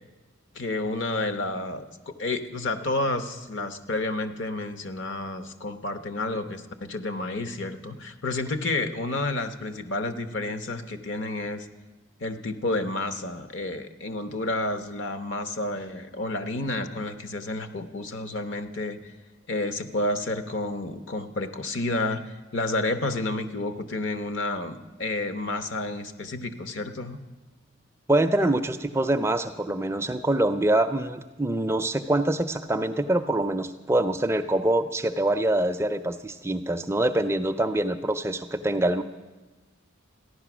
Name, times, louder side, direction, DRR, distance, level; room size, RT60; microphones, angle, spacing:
voice 1, 0.5-11.7 12.2-19.1 19.5-27.2, left 2 dB, 60° left, 9 dB, 0.8 m, -30 dB
voice 2, 28.1-39.0, right 1 dB, 10° right, 8 dB, 0.4 m, -25 dB
14.5 x 10.5 x 6.0 m, 1.2 s
head